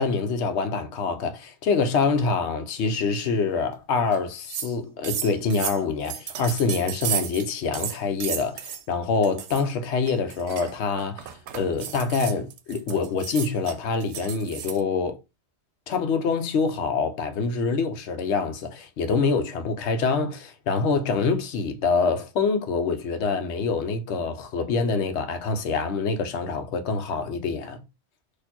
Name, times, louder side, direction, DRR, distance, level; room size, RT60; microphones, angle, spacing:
voice 1, 0.0-15.2 15.9-27.8, left 4 dB, 80° left, 0.9 m, -25 dB
sound 1, 4.1-4.2 4.4-4.7 5.0-7.5 7.7-8.8 9.2-9.6 10.1-14.8, right 9 dB, 80° right, 0.8 m, -33 dB
4.2 x 2.6 x 2.8 m
omnidirectional pair, 1.2 m